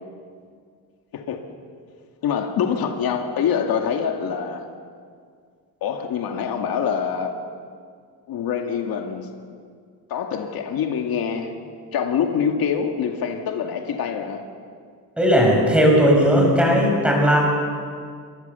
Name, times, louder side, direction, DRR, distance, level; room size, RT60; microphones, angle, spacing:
voice 1, 2.2-4.7 5.8-7.4 8.3-9.3 10.1-11.6 11.9-14.5, left 7 dB, 65° left, 3 dB, 2.3 m, -25 dB
voice 2, 15.2-17.4, equal, 5° right, -1 dB, 6.7 m, -16 dB
29.0 x 25.0 x 7.0 m, 2.1 s
cardioid pair, 180°, 38 cm